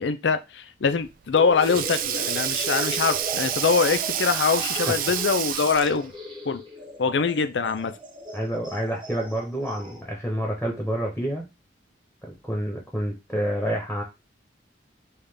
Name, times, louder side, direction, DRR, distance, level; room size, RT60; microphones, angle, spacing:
voice 1, 0.0-6.1 6.5-6.6 7.0-8.0, left 5 dB, 70° left, 0.5 m, -23 dB
Sink (filling or washing), 0.9-6.1, right 11 dB, 50° right, 0.3 m, -29 dB
sound 1, 1.3-10.0, left 1 dB, 25° right, 1.1 m, -38 dB
voice 2, 8.3-11.4 12.4-14.0, equal, ahead, 1.0 m, -28 dB
5.5 x 2.4 x 3.4 m
head